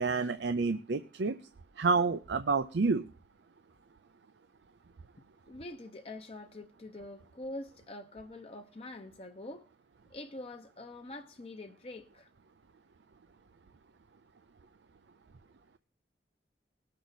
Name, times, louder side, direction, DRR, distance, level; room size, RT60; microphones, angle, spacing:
voice 1, 0.0-1.4 1.8-3.0, right 4 dB, 80° right, 0.5 m, -29 dB
voice 2, 5.5-9.7 10.1-12.3, left 2 dB, 35° left, 0.8 m, -45 dB
19.5 x 6.6 x 4.1 m
head